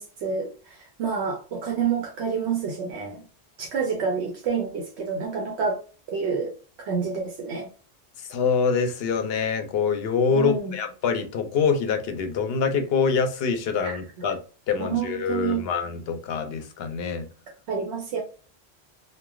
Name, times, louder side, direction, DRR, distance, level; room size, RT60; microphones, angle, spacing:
voice 1, 0.0-3.2 3.6-5.8 6.1-6.5 6.8-7.7 10.3-10.8 13.8-14.0 14.8-15.7 17.7-18.2, right 6 dB, 80° right, 0.9 m, -28 dB
voice 2, 8.3-14.4 14.7-17.3, left 5 dB, 70° left, 0.8 m, -25 dB
3.1 x 2.1 x 2.3 m
omnidirectional pair, 1.1 m